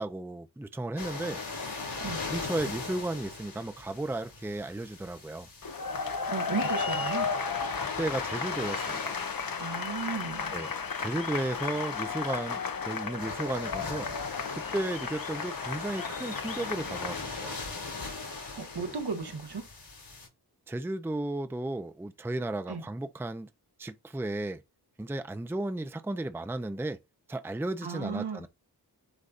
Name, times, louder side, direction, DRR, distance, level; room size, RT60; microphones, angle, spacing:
voice 1, 0.0-1.4 2.3-5.5 8.0-9.2 10.5-10.7 11.0-14.1 14.5-17.6 18.8-18.9 20.7-23.5 23.8-24.6 25.0-27.0 27.3-28.5, right 2 dB, 5° right, 0.5 m, -34 dB
sound 1, 1.0-20.3, left 3 dB, 85° left, 3.4 m, -41 dB
sound 2, 5.6-17.3, left 5 dB, 60° left, 0.9 m, -34 dB
voice 2, 6.3-7.3 9.6-10.5 18.5-19.7 22.7-22.8 27.8-28.4, right 5 dB, 70° right, 1.7 m, -35 dB
9.8 x 4.1 x 2.6 m
wide cardioid pair, 75°, 40 cm